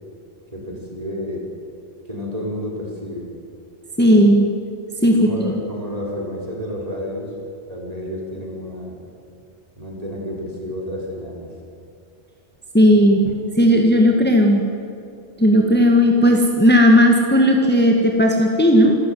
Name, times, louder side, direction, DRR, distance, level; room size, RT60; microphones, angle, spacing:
voice 1, 0.5-1.5 2.1-3.3 5.1-7.3 7.7-9.0 9.8-11.5, equal, 30° right, -2 dB, 5.2 m, -30 dB
voice 2, 4.0-4.5 5.0-5.6 12.7-14.6 15.4-19.0, equal, 10° left, 1 dB, 1.8 m, -15 dB
27.0 x 13.0 x 9.4 m, 2.5 s
omnidirectional pair, 1.2 m